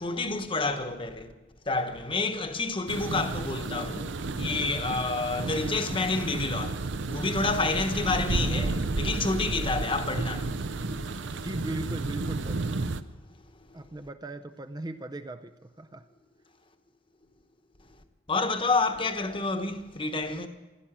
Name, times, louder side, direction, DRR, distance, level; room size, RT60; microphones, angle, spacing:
voice 1, 0.0-1.3 1.7-10.7 18.3-20.5, left 3 dB, 25° left, 1.1 m, -29 dB
sound 1, 2.9-13.0, right 3 dB, 65° right, 0.6 m, -32 dB
voice 2, 4.6-5.0 11.4-12.9 13.7-16.1, right 2 dB, 20° right, 0.5 m, -39 dB
16.0 x 12.0 x 7.5 m
head